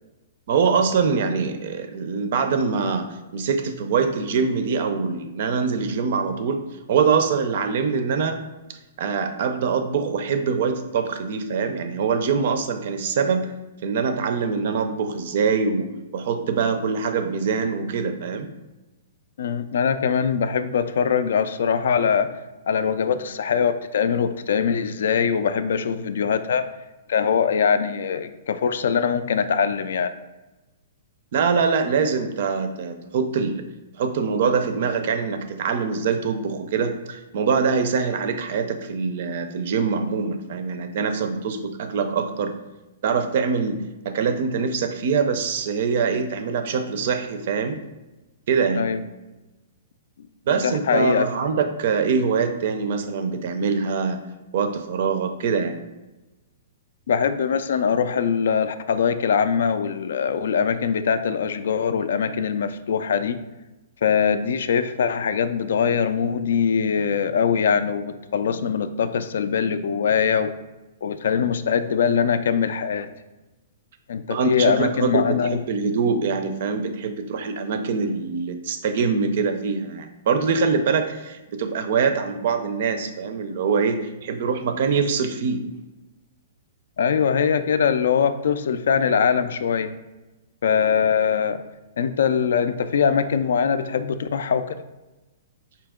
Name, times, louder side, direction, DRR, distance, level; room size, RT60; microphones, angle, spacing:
voice 1, 0.5-3.1 3.3-6.6 6.9-8.4 9.0-13.5 13.8-18.5 31.3-33.6 34.0-42.5 43.0-43.8 44.0-47.8 48.5-48.9 50.5-54.2 54.5-55.8 74.3-85.6, right 5 dB, 50° right, 8 dB, 0.4 m, -24 dB
voice 2, 19.4-22.3 22.7-26.7 27.1-30.1 48.8-49.0 50.6-51.3 57.1-63.4 64.0-70.5 71.0-73.1 74.1-75.6 87.0-89.9 90.6-91.6 92.0-94.7, left 7 dB, 70° left, 11 dB, 0.3 m, -22 dB
5.0 x 2.8 x 3.6 m, 1.1 s
hypercardioid pair, 170°, 0 cm